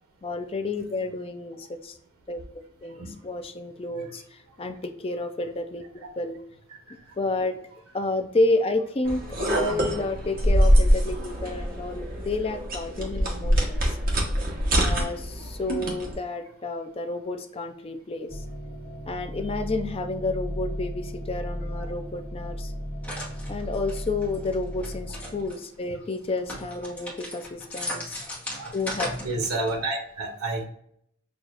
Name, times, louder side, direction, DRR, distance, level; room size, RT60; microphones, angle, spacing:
voice 1, 0.2-2.0 2.3-6.4 7.2-7.6 7.9-14.0 14.7-18.4 19.1-22.7 23.5-28.2 28.7-29.1, left 2 dB, 25° left, 6 dB, 0.4 m, -30 dB
Water Bottle Open, 9.0-16.2, equal, 40° right, 1.1 m, -24 dB
sound 1, 18.3-25.5, equal, 50° left, 1.5 m, -35 dB
sound 2, 23.0-25.6 26.1-29.9, left 1 dB, 5° left, 1.0 m, -37 dB
voice 2, 29.2-30.7, right 2 dB, 80° right, 4 dB, 0.8 m, -30 dB
6.3 x 2.4 x 2.4 m, 0.70 s
head